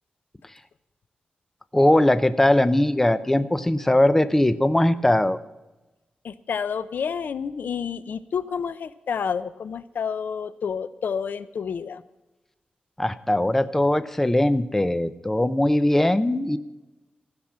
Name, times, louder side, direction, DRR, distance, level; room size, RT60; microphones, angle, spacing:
voice 1, 1.7-5.4 13.0-16.6, left 1 dB, 10° left, 13 dB, 0.6 m, -20 dB
voice 2, 6.2-12.0, left 6 dB, 75° left, 15 dB, 0.6 m, -29 dB
15.5 x 6.0 x 8.6 m, 1.0 s
wide cardioid pair, 115°, 3 cm